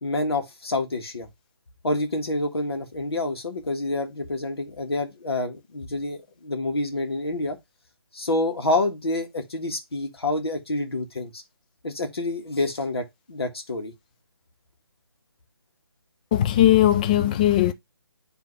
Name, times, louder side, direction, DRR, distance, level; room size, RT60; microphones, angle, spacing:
voice 1, 0.0-1.3 1.8-7.6 8.1-11.4 11.8-13.9, left 2 dB, 70° left, 1.9 m, -28 dB
voice 2, 16.3-17.7, left 12 dB, 20° left, 0.4 m, -18 dB
10.0 x 3.4 x 3.2 m
figure-of-eight pair, 150°, 13 cm